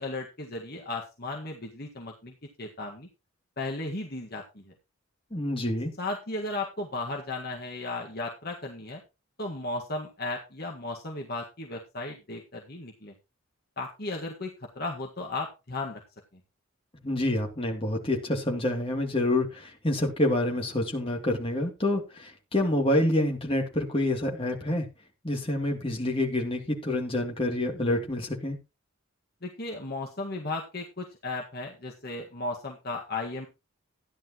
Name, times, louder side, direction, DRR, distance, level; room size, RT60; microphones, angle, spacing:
voice 1, 0.0-2.3 2.6-3.1 3.6-4.6 6.0-9.0 9.4-13.1 13.8-16.0 29.4-33.5, left 2 dB, 45° left, 1.7 m, -35 dB
voice 2, 5.3-5.9 17.0-24.9 25.2-28.6, left 1 dB, 25° left, 2.8 m, -27 dB
14.0 x 10.5 x 3.0 m
head